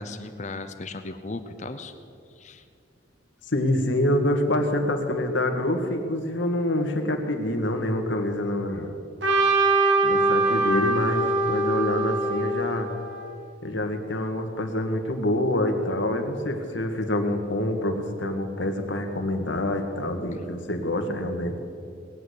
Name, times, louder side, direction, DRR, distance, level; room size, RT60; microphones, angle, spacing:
voice 1, 0.0-1.9 2.4-2.6, left 2 dB, 40° left, 9 dB, 0.8 m, -36 dB
voice 2, 3.5-8.9 10.0-12.9 13.6-21.5, left 1 dB, 80° left, 4 dB, 1.8 m, -26 dB
Trumpet, 9.2-13.4, right 2 dB, 75° right, 2.5 m, -23 dB
19.5 x 9.1 x 8.2 m, 2.4 s
head